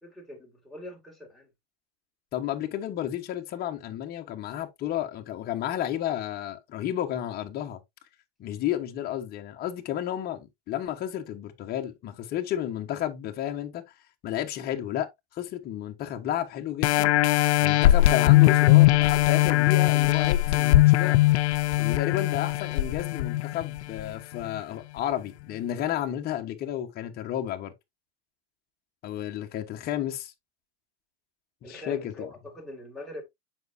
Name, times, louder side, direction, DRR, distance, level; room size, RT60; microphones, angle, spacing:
voice 1, 0.0-1.5 31.6-33.2, left 1 dB, ahead, 2.4 m, -42 dB
voice 2, 2.3-7.8 8.4-13.8 14.2-17.1 17.6-21.2 21.8-27.7 29.0-30.3 31.6-32.3, left 11 dB, 30° left, 1.2 m, -32 dB
sound 1, 16.8-24.0 24.5-24.6, left 16 dB, 80° left, 0.7 m, -20 dB
7.8 x 5.4 x 2.6 m
supercardioid pair, 145°, 33 cm